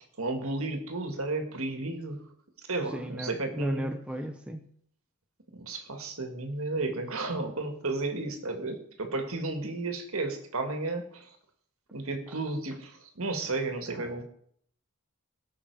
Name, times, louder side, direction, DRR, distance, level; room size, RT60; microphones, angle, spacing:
voice 1, 0.2-2.2 2.7-3.9 5.5-11.3 11.9-14.2, right 2 dB, 70° right, 5 dB, 1.7 m, -33 dB
voice 2, 2.9-4.7, equal, 5° right, 5 dB, 0.6 m, -35 dB
18.0 x 6.1 x 4.7 m, 0.67 s
head